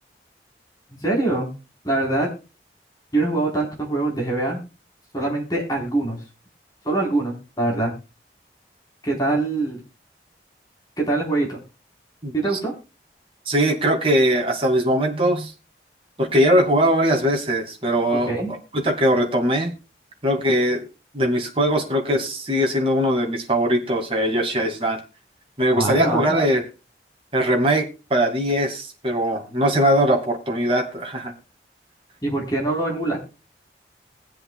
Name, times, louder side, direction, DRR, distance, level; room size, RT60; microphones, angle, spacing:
voice 1, 1.0-1.5 1.8-2.3 3.1-4.6 5.1-6.2 6.8-7.9 9.0-9.8 11.0-11.6 12.3-12.7 18.1-18.5 25.8-26.4 32.2-33.2, right 2 dB, 20° left, -1 dB, 4.2 m, -23 dB
voice 2, 13.5-15.5 16.2-18.3 18.7-19.7 20.2-20.8 21.1-25.0 25.6-26.6 27.3-31.3, equal, 30° right, 2 dB, 2.3 m, -20 dB
22.0 x 7.6 x 2.3 m, 0.30 s
head